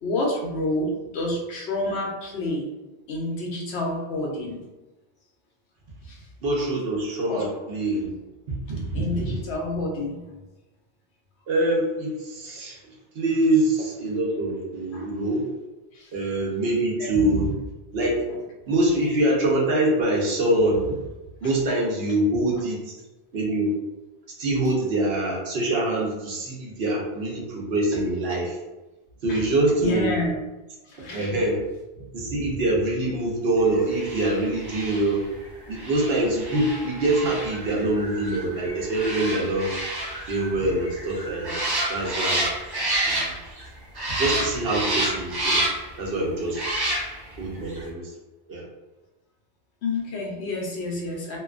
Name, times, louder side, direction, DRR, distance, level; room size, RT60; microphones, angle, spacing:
voice 1, 0.0-2.6 3.1-4.6 6.1-6.2 7.3-7.4 8.9-10.2 14.9-15.1 15.9-16.1 17.0-17.1 18.3-18.4 29.3-29.5 29.8-30.3 30.9-31.4 49.8-51.4, left 2 dB, 85° left, -1 dB, 0.9 m, -29 dB
voice 2, 6.4-8.1 8.5-9.3 11.5-12.8 13.1-15.4 16.1-17.5 17.9-18.2 18.7-20.9 21.4-22.9 23.3-23.7 24.4-28.6 29.2-30.1 31.1-31.6 32.1-35.2 35.7-39.7 40.3-41.6 41.9-42.4 43.0-43.3 44.1-45.6 46.0-46.6 47.4-48.1 48.5-48.6, right 1 dB, 70° right, -3 dB, 0.9 m, -24 dB
sound 1, 33.9-43.7 43.9-46.0 46.5-47.4 47.7-47.8, right 1 dB, 35° right, 0.4 m, -29 dB
2.6 x 2.2 x 2.4 m, 1.1 s
omnidirectional pair, 1.1 m